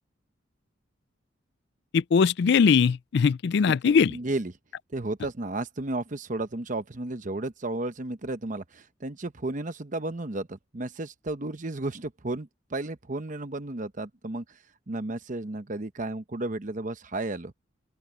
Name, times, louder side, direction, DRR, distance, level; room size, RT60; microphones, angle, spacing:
voice 1, 1.9-4.1, left 6 dB, 60° left, 0.4 m, -21 dB
voice 2, 3.8-4.5 4.9-14.6 14.9-17.5, right 2 dB, 40° right, 0.9 m, -33 dB
open air
head